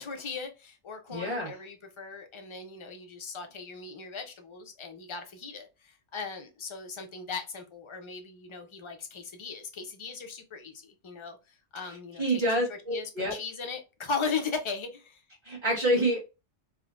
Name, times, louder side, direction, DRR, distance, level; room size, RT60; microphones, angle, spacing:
voice 1, 0.0-15.2, left 5 dB, 35° left, 0.5 m, -38 dB
voice 2, 1.1-1.5 12.2-13.3 15.4-16.2, right 1 dB, 25° right, 1.3 m, -27 dB
3.5 x 2.5 x 2.4 m
omnidirectional pair, 1.2 m